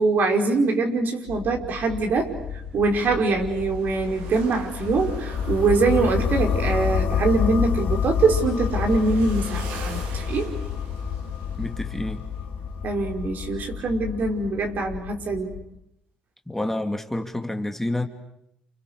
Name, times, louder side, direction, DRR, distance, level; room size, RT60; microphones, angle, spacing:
voice 1, 0.0-10.6 12.8-15.5, right 3 dB, 60° right, 5.5 m, -23 dB
sound 1, 1.3-15.6, left 7 dB, 80° left, 2.9 m, -37 dB
sound 2, 1.7-12.7 12.9-13.0 15.1-15.3, right 5 dB, 85° right, 4.3 m, -45 dB
sound 3, 4.8-14.7, left 7 dB, 65° left, 3.2 m, -28 dB
voice 2, 11.6-12.2 16.5-18.1, left 1 dB, 10° left, 2.7 m, -28 dB
29.5 x 29.5 x 6.8 m
supercardioid pair, 70°, 4 cm